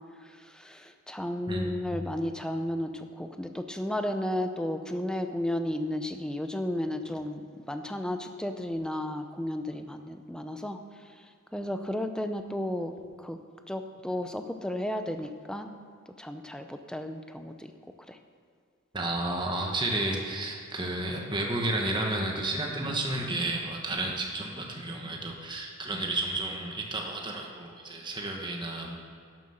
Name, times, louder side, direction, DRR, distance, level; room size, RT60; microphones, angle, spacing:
voice 1, 0.2-13.4 13.7-15.7 16.2-17.7 18.1-18.2, left 1 dB, 5° left, 7 dB, 0.6 m, -33 dB
voice 2, 1.5-2.0 18.9-29.0, right 2 dB, 20° right, 0 dB, 1.3 m, -32 dB
11.5 x 7.9 x 6.4 m, 2.3 s
head